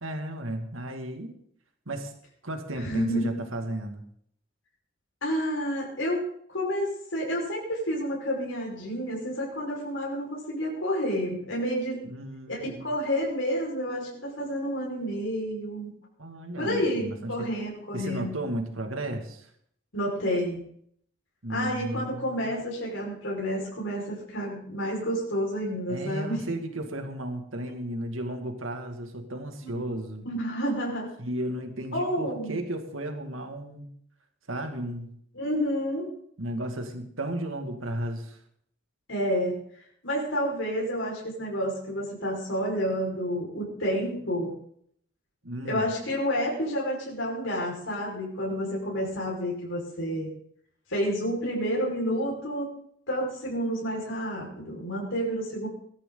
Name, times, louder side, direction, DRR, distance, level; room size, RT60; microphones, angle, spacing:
voice 1, 0.0-1.4 1.9-2.1 2.4-4.0 12.0-12.9 16.2-17.5 17.9-19.5 21.4-22.4 25.9-30.3 31.2-33.9 34.5-35.1 36.4-38.4 45.4-45.9, right 1 dB, 90° right, 5 dB, 2.4 m, -34 dB
voice 2, 2.8-3.4 5.2-6.2 6.5-12.0 12.5-15.9 16.6-18.4 19.9-20.6 21.5-26.4 29.6-29.8 30.3-31.1 31.9-32.6 35.3-36.1 39.1-39.5 40.0-44.5 45.6-50.3 50.9-52.7 53.1-55.7, equal, 80° left, -3 dB, 5.3 m, -29 dB
21.0 x 14.0 x 4.0 m, 0.65 s
head